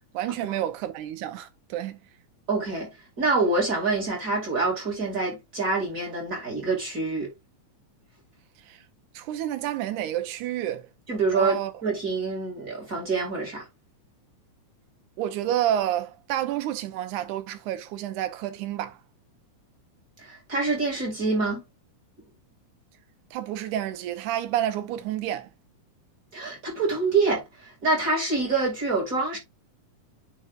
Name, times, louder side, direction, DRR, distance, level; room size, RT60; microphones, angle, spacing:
voice 1, 0.1-2.0 9.2-10.9 11.3-11.7 15.2-19.0 23.3-25.5, right 12 dB, 80° right, 2.3 m, -29 dB
voice 2, 2.5-2.9 3.2-7.3 11.1-13.6 20.2-21.6 26.3-29.4, right 3 dB, 30° right, 2.4 m, -26 dB
10.0 x 4.0 x 2.5 m
omnidirectional pair, 3.6 m